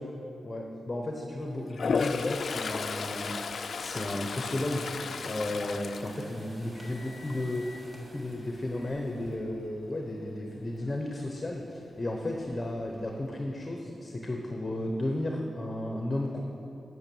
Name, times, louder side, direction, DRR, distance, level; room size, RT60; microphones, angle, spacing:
voice 1, 0.4-4.9 5.2-7.7 7.9-16.4, left 1 dB, 20° left, 1 dB, 0.8 m, -34 dB
Toilet flush, 1.7-6.9 7.3-7.7 12.1-12.2 12.5-13.2, left 5 dB, 60° left, 0.3 m, -34 dB
sound 1, 2.3-9.4, left 1 dB, 35° right, 1.8 m, -51 dB
8.8 x 6.2 x 6.9 m, 2.9 s
wide cardioid pair, 115°, 0 cm